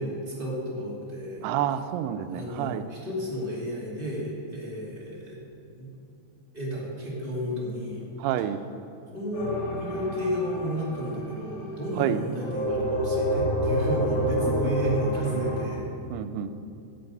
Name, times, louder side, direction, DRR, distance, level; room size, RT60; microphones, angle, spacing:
voice 1, 0.0-1.5 2.3-5.5 5.8-5.9 6.5-8.1 9.1-15.9, equal, 15° right, -5 dB, 2.0 m, -32 dB
voice 2, 1.4-2.8 8.2-8.6 12.0-12.2 14.5-14.6 16.1-16.5, right 10 dB, 90° right, 9 dB, 2.6 m, -28 dB
sound 1, 9.3-11.8 12.4-15.7, equal, 45° left, 1.7 m, -28 dB
15.0 x 7.8 x 5.4 m, 2.6 s
omnidirectional pair, 4.5 m